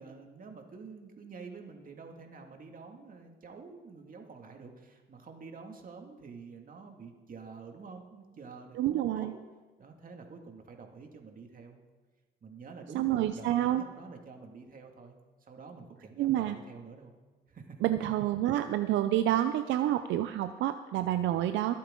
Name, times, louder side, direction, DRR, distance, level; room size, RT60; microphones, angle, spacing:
voice 1, 0.0-9.3 9.8-11.8 12.4-17.1 17.5-17.8, right 4 dB, 45° right, 3 dB, 2.2 m, -48 dB
voice 2, 8.8-9.3 12.9-13.8 16.2-16.6 17.8-21.7, right 13 dB, 80° right, 10 dB, 0.5 m, -28 dB
22.5 x 8.5 x 3.8 m, 1.3 s
cardioid pair, 75°, 19 cm